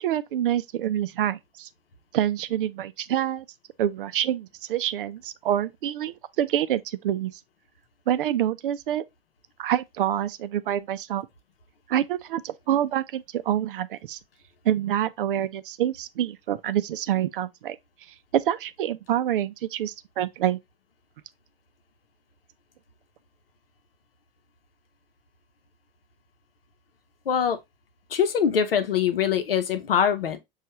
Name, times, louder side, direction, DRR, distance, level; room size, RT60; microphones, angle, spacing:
voice 1, 0.0-1.7 2.1-3.5 3.8-7.3 8.1-9.0 9.6-11.3 11.9-14.2 14.6-17.8 18.3-20.6, right 11 dB, 65° right, 0.5 m, -26 dB
voice 2, 27.3-27.6 28.1-30.4, left 8 dB, 75° left, 0.8 m, -23 dB
6.3 x 2.4 x 2.9 m
figure-of-eight pair, 85°, 29 cm